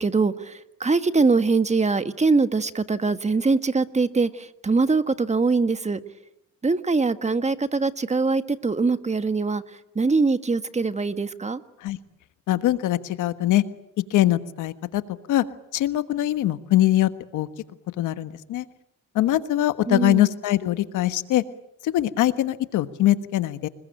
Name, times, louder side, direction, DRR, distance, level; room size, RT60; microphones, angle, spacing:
voice 1, 0.0-6.0 6.6-9.6 9.9-11.6 19.9-20.3, right 4 dB, 20° right, 11 dB, 1.6 m, -23 dB
voice 2, 12.5-13.6 14.1-15.0 15.3-15.4 15.7-17.5 18.0-18.6 19.1-21.4 21.8-23.7, left 14 dB, 90° left, 11 dB, 1.5 m, -22 dB
29.0 x 21.0 x 9.0 m, 0.85 s
cardioid pair, 90°, 30 cm